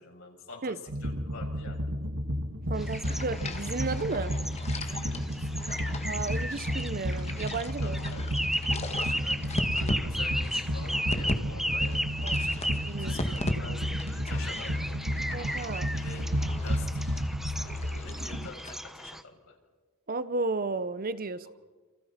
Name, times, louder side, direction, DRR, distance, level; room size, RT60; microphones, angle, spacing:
voice 1, 0.0-0.7 1.0-1.8 4.8-5.1 5.4-5.9 7.8-8.2 8.6-12.7 13.0-15.0 15.9-16.3 16.6-19.5 21.4-21.5, left 4 dB, 65° left, 1 dB, 6.8 m, -47 dB
sound 1, 0.9-18.5, equal, 60° right, 2.1 m, -32 dB
sound 2, 2.7-19.2, equal, ahead, 1.0 m, -36 dB
voice 2, 2.7-4.3 6.1-8.0 12.2-13.2 15.3-15.9 20.1-21.5, right 3 dB, 40° right, 14 dB, 0.9 m, -33 dB
sound 3, 2.8-11.4 11.7-13.6 13.9-18.7, left 1 dB, 30° left, 1.9 m, -39 dB
29.0 x 28.0 x 5.8 m, 1.3 s
head